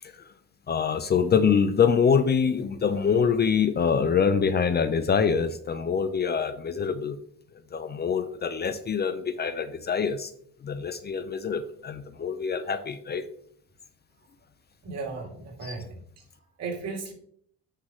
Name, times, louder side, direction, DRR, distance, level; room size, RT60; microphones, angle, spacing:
voice 1, 0.0-0.3 0.7-7.2 7.7-10.3 10.6-13.2 15.6-15.8, left 6 dB, 35° left, 11 dB, 0.5 m, -25 dB
voice 2, 14.8-15.9 16.6-17.1, right 4 dB, 55° right, 0 dB, 2.6 m, -35 dB
9.8 x 5.8 x 3.1 m, 0.66 s
cardioid pair, 120°, 31 cm